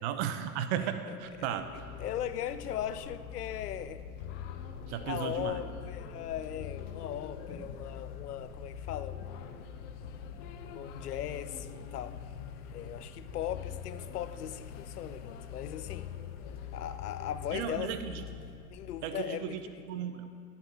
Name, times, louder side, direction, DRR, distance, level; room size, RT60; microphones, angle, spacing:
voice 1, 0.0-1.7 4.9-5.6 17.5-18.2 19.0-20.4, right 9 dB, 45° right, 10 dB, 0.9 m, -35 dB
sound 1, 1.2-19.4, left 6 dB, 40° left, 1.2 m, -45 dB
voice 2, 2.0-4.0 5.0-9.7 10.7-12.2 12.7-16.1 16.7-18.0 18.7-19.8, left 10 dB, 70° left, 13 dB, 0.7 m, -38 dB
sound 2, 4.2-17.6, left 10 dB, 25° left, 0.4 m, -47 dB
12.0 x 6.8 x 5.9 m, 2.3 s
figure-of-eight pair, 90°, 48 cm